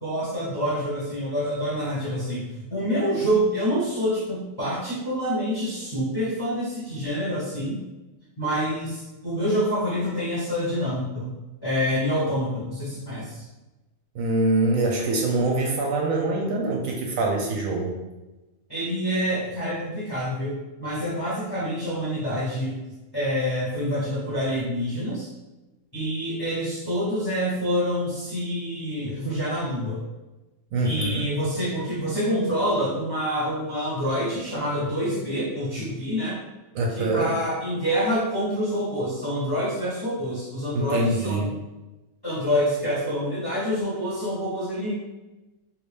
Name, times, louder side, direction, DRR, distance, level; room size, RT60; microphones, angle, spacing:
voice 1, 0.0-7.8 8.4-11.3 11.6-13.4 18.7-22.8 23.1-25.3 25.9-30.0 30.8-36.4 36.9-41.5 42.2-44.9, equal, 20° left, -7 dB, 0.7 m, -27 dB
voice 2, 14.1-18.0 30.7-31.2 36.7-37.3 40.7-41.5, right 2 dB, 70° right, 0 dB, 0.9 m, -24 dB
3.1 x 2.6 x 3.3 m, 1.1 s
omnidirectional pair, 1.6 m